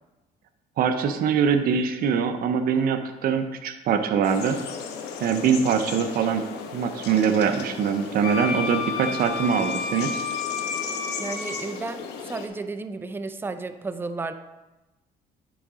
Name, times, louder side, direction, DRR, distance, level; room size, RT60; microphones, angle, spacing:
voice 1, 0.8-4.6 5.2-6.5 6.7-10.1, right 7 dB, 60° right, 7 dB, 0.7 m, -23 dB
sound 1, 4.2-12.5, left 6 dB, 80° left, 1.0 m, -36 dB
Wind instrument woodwind instrument, 8.2-11.6, left 5 dB, 55° left, 2.0 m, -30 dB
voice 2, 11.2-14.3, right 3 dB, 15° right, 9 dB, 0.4 m, -33 dB
10.0 x 4.9 x 3.6 m, 1.1 s
cardioid pair, 110°, 17 cm